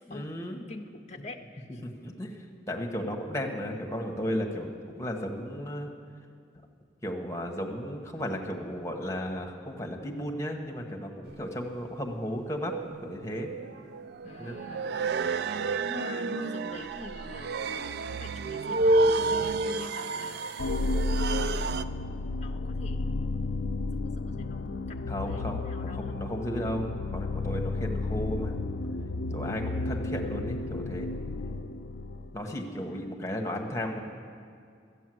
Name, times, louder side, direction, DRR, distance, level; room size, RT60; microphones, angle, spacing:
voice 1, 0.1-0.6 1.8-2.4 2.7-5.9 7.0-12.7 13.0-13.5 14.4-14.5 25.1-26.9 27.1-28.6 29.3-31.1 32.3-34.0, equal, 15° left, 2 dB, 1.2 m, -34 dB
voice 2, 0.7-1.8 14.2-15.0 15.9-21.8 22.4-23.2 23.5-23.7 24.0-26.1 32.4-32.7, left 2 dB, 40° left, 4 dB, 0.6 m, -45 dB
sound 1, 11.3-11.4 12.6-21.8, right 2 dB, 60° right, 0.4 m, -30 dB
sound 2, 20.6-32.5, left 2 dB, 85° left, 0.4 m, -32 dB
13.0 x 8.3 x 7.7 m, 2.3 s
head